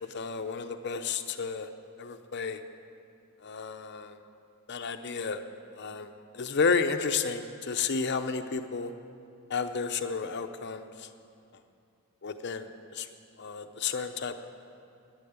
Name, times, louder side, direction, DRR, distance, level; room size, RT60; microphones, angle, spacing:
voice 1, 0.1-1.7 2.0-2.6 3.4-4.2 4.7-5.4 5.8-8.9 9.5-11.1 12.2-13.1 13.4-14.3, left 5 dB, 50° left, 7 dB, 0.7 m, -32 dB
10.5 x 9.7 x 9.5 m, 2.5 s
head